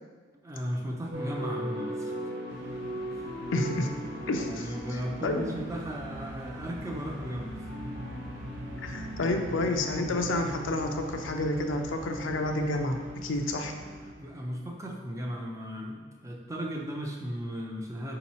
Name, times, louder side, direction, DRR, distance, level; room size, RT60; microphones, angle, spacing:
voice 1, 0.4-2.1 3.1-3.3 4.3-7.7 14.2-18.2, equal, 15° right, 0 dB, 0.4 m, -36 dB
sound 1, 1.1-14.5, equal, 60° right, 1.1 m, -40 dB
sound 2, 2.5-14.1, equal, 85° right, 0.6 m, -43 dB
voice 2, 3.5-3.9 4.3-5.5 8.8-13.7, left 2 dB, 75° left, 4 dB, 0.5 m, -30 dB
4.4 x 2.9 x 4.1 m, 1.5 s
head